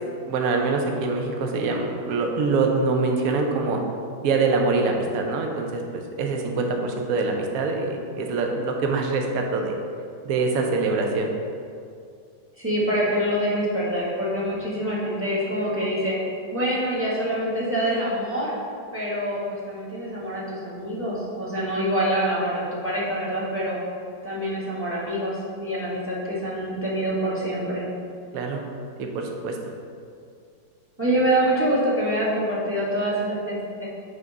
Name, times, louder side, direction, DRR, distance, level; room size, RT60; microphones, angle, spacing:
voice 1, 0.3-3.8 4.2-9.7 10.2-11.3 28.3-28.6 29.0-29.6, right 3 dB, 60° right, 2 dB, 1.1 m, -24 dB
voice 2, 12.6-16.1 16.5-18.5 18.9-23.8 24.2-27.8 31.0-33.9, right 1 dB, 10° right, -6 dB, 1.2 m, -25 dB
6.5 x 3.7 x 5.3 m, 2.3 s
omnidirectional pair, 1.9 m